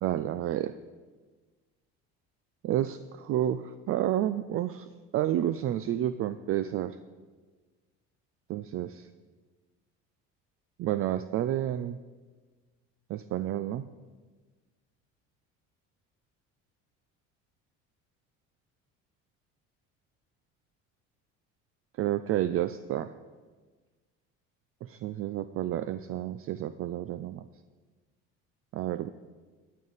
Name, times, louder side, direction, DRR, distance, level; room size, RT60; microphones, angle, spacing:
voice 1, 0.0-0.7 2.6-7.0 8.5-9.1 10.8-12.0 13.1-13.8 22.0-23.1 24.8-27.4 28.7-29.1, right 12 dB, 45° right, 13 dB, 0.4 m, -30 dB
13.5 x 9.4 x 4.1 m, 1.4 s
supercardioid pair, 95°, 30 cm